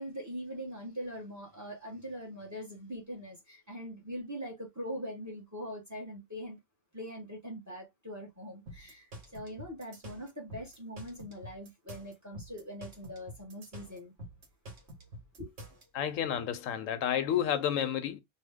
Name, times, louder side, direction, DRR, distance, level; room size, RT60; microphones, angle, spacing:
voice 1, 0.0-6.6 6.9-14.1 15.4-15.5, equal, 15° right, 0.9 m, -42 dB
sound 1, 8.7-15.8, equal, 60° right, 1.3 m, -47 dB
voice 2, 15.9-18.2, left 9 dB, 85° left, 1.0 m, -30 dB
2.8 x 2.2 x 3.4 m
omnidirectional pair, 1.3 m